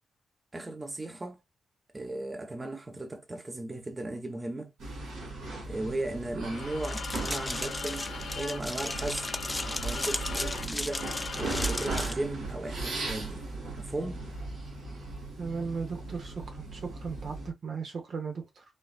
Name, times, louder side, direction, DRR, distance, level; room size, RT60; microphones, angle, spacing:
voice 1, 0.5-1.4 1.9-4.7 5.7-9.2 9.8-11.1 11.4-13.4 13.8-14.2, right 2 dB, 25° right, 0.8 m, -36 dB
sound 1, 4.8-17.5, right 3 dB, 90° right, 2.3 m, -37 dB
sound 2, 6.4-12.2, left 6 dB, 70° left, 0.6 m, -40 dB
sound 3, 6.8-12.1, left 1 dB, 15° left, 0.4 m, -36 dB
voice 2, 15.4-18.6, right 5 dB, 60° right, 0.9 m, -36 dB
4.4 x 2.5 x 2.3 m
cardioid pair, 65°, 0 cm